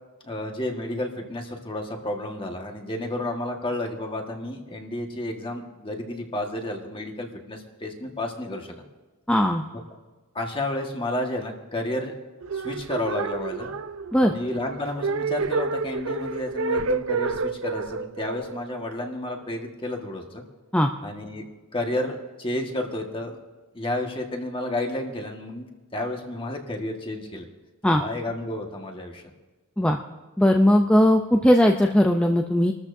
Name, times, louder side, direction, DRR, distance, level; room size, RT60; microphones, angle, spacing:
voice 1, 0.2-8.8 10.3-12.1 12.5-13.7 14.2-20.4 21.0-21.5 21.7-23.4 23.7-25.7 25.9-27.5 28.0-29.2, left 1 dB, 25° left, 2 dB, 1.6 m, -31 dB
voice 2, 9.3-9.6 14.1-14.3 20.7-20.9 27.8-28.0 29.8-30.0 30.4-32.7, left 1 dB, 5° left, 2 dB, 0.5 m, -18 dB
sound 1, 12.4-19.6, right 4 dB, 75° right, 0.6 m, -29 dB
28.5 x 13.5 x 2.7 m, 1.3 s
head